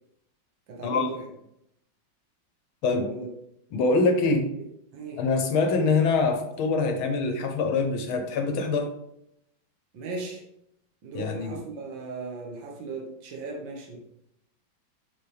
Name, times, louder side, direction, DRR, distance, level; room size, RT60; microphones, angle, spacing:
voice 1, 0.7-1.3 2.9-3.3 4.6-4.7 4.9-5.2 9.9-10.4 11.0-14.0, right 3 dB, 70° right, -1 dB, 1.8 m, -37 dB
voice 2, 3.7-4.5 5.2-8.9 11.1-11.6, left 3 dB, 85° left, 6 dB, 1.8 m, -24 dB
7.0 x 5.5 x 3.4 m, 0.77 s
omnidirectional pair, 2.2 m